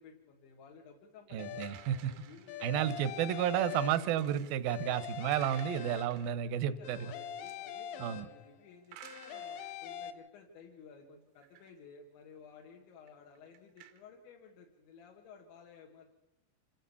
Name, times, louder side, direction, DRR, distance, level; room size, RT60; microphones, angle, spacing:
voice 1, 0.0-2.7 6.4-16.1, left 5 dB, 85° left, 0 dB, 4.3 m, -55 dB
voice 2, 1.3-2.1 2.6-7.1 8.0-8.3, right 10 dB, 75° right, 13 dB, 2.2 m, -32 dB
sound 1, 1.4-2.0 2.5-4.3 4.7-6.5 6.8-8.6 9.0-10.1, left 9 dB, 70° left, 2.7 m, -43 dB
sound 2, 1.5-2.7 3.5-4.6 5.0-6.4 7.3-7.6 8.8-10.2 11.4-11.7 12.2-12.3 13.1-14.0, right 12 dB, 90° right, 3.6 m, -55 dB
27.0 x 15.0 x 7.0 m, 0.94 s
omnidirectional pair, 5.1 m